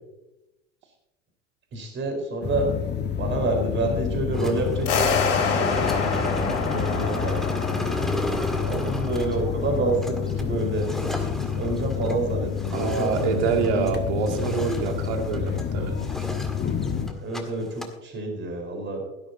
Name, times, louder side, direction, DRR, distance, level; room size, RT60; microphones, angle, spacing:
voice 1, 1.7-2.7 3.2-7.6 8.6-10.9 11.5-13.8 17.2-19.0, right 2 dB, 30° right, 3 dB, 4.5 m, -28 dB
sound 1, 2.4-17.1, left 9 dB, 30° left, 1.4 m, -29 dB
sound 2, 4.3-14.0 14.3-15.7 16.0-17.4 17.7-17.9, equal, ahead, 1.9 m, -33 dB
sound 3, 4.9-9.8, left 5 dB, 75° left, 2.6 m, -28 dB
voice 2, 12.7-16.1, right 6 dB, 60° right, 3 dB, 2.5 m, -26 dB
17.0 x 13.0 x 2.8 m, 0.95 s
figure-of-eight pair, 75°, 37 cm